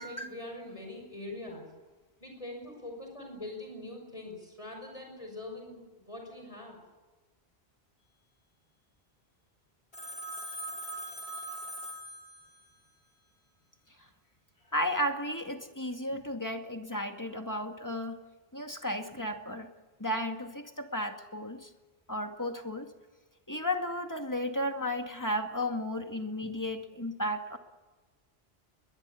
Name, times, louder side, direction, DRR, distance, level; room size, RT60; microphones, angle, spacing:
voice 1, 0.0-1.7 2.2-6.8, left 2 dB, 35° left, 2 dB, 6.1 m, -43 dB
Telephone, 9.9-12.8, right 1 dB, 85° left, 5.2 m, -41 dB
voice 2, 14.7-18.2 18.5-19.7 20.0-21.7 22.1-22.9 23.5-27.6, left 1 dB, 20° left, 4 dB, 2.2 m, -34 dB
22.0 x 22.0 x 8.4 m, 1.2 s
omnidirectional pair, 1.0 m